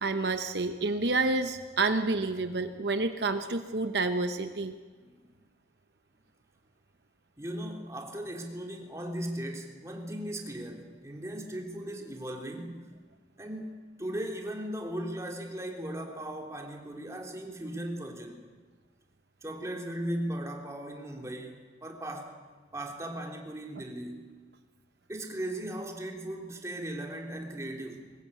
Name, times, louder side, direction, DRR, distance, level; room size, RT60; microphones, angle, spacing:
voice 1, 0.0-4.8 23.8-23.9, right 3 dB, 70° right, 8 dB, 0.9 m, -29 dB
voice 2, 7.4-12.9 13.4-18.4 19.4-22.3 22.7-24.3 25.1-28.1, right 1 dB, 15° right, 1 dB, 3.1 m, -37 dB
22.0 x 19.5 x 8.4 m, 1.4 s
head